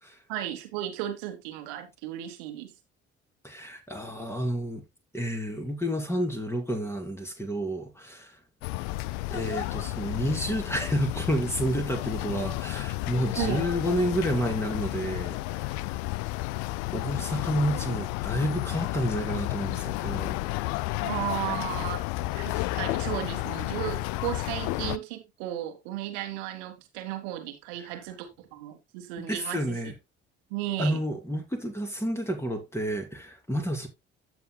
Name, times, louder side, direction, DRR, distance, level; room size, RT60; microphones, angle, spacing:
voice 1, 0.3-2.7 13.4-13.7 21.0-22.0 22.3-29.8 30.5-31.0, right 12 dB, 70° right, 1.5 m, -34 dB
voice 2, 3.4-4.8 5.1-8.3 9.3-15.9 16.9-20.4 29.2-29.9 30.8-33.9, equal, 10° left, 2.9 m, -30 dB
sound 1, 8.6-25.0, left 19 dB, 60° left, 0.5 m, -32 dB
14.5 x 6.2 x 2.3 m
figure-of-eight pair, 50°, 33 cm